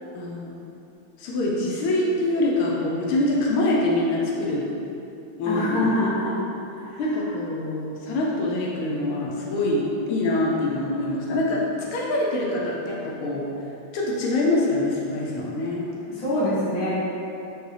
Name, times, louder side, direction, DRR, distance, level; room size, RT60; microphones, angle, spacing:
voice 1, 0.1-0.5 1.2-4.7 5.4-5.9 7.0-13.5 13.9-15.9, left 2 dB, 90° left, -3 dB, 1.5 m, -25 dB
voice 2, 5.4-6.3 6.8-7.2 16.1-17.0, left 1 dB, 50° left, -10 dB, 1.6 m, -25 dB
4.7 x 2.6 x 3.2 m, 2.8 s
omnidirectional pair, 2.3 m